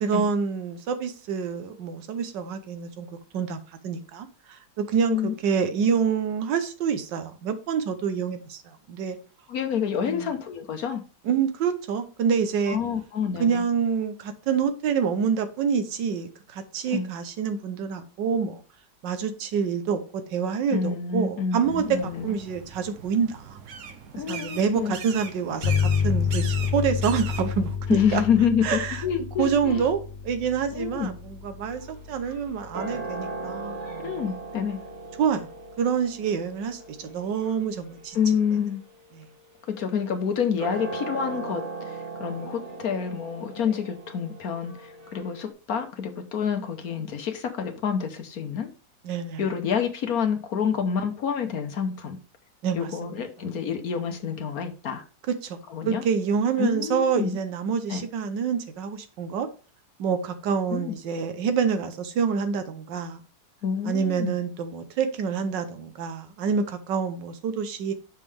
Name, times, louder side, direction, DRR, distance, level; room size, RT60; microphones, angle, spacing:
voice 1, 0.0-3.1 3.3-8.6 8.9-9.2 10.0-10.3 11.2-12.8 13.4-18.6 19.0-23.6 24.3-28.2 28.6-29.0 29.4-30.0 30.2-34.1 35.2-35.5 35.8-38.2 39.2-39.3 49.0-49.4 52.6-53.1 55.3-55.6 55.8-59.5 60.0-63.2 63.8-67.9, right 6 dB, 75° right, 1.5 m, -27 dB
voice 2, 9.5-11.0 12.7-13.6 16.9-17.1 20.7-22.3 24.1-25.0 27.9-29.8 30.7-31.1 34.0-34.8 38.1-38.8 39.7-48.7 49.4-52.2 52.7-55.0 55.7-56.0 56.6-57.4 57.9-58.0 60.7-60.9 63.6-64.4, left 7 dB, 60° left, 1.3 m, -28 dB
sound 1, 21.6-27.8, right 6 dB, 60° right, 0.9 m, -40 dB
sound 2, 25.6-34.9, left 7 dB, 75° left, 1.6 m, -30 dB
sound 3, 31.7-45.5, right 3 dB, 40° right, 1.9 m, -39 dB
6.5 x 5.2 x 3.4 m
omnidirectional pair, 2.0 m